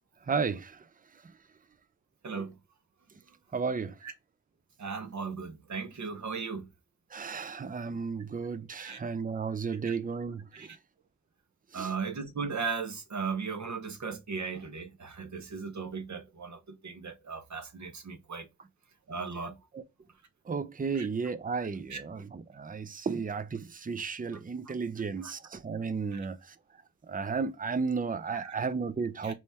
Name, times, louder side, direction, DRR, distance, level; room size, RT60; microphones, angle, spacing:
voice 1, 0.3-0.8 1.2-1.3 3.5-4.0 7.1-10.8 11.7-11.9 19.7-19.8 20.5-26.6 27.1-29.3, right 5 dB, 30° right, 0.5 m, -33 dB
voice 2, 4.8-6.7 8.8-9.0 9.8-10.0 10.5-10.7 11.7-18.5 19.1-19.6 20.9-21.1 21.9-22.0 25.2-25.3 26.1-26.2 28.3-28.6 29.2-29.3, right 5 dB, 70° right, 0.9 m, -37 dB
3.4 x 3.0 x 4.2 m
wide cardioid pair, 75°, 30 cm